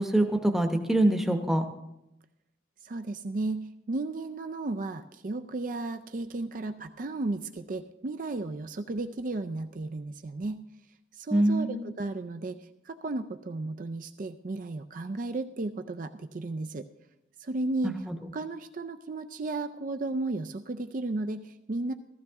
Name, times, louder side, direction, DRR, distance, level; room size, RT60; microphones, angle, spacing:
voice 1, 0.0-1.6 11.3-11.9 17.8-17.9, right 1 dB, ahead, 5 dB, 0.9 m, -24 dB
voice 2, 2.8-10.7 11.1-12.6 12.9-16.9 17.4-18.0 18.3-21.9, right 2 dB, 45° right, 7 dB, 0.4 m, -34 dB
15.0 x 14.0 x 3.6 m, 0.89 s
head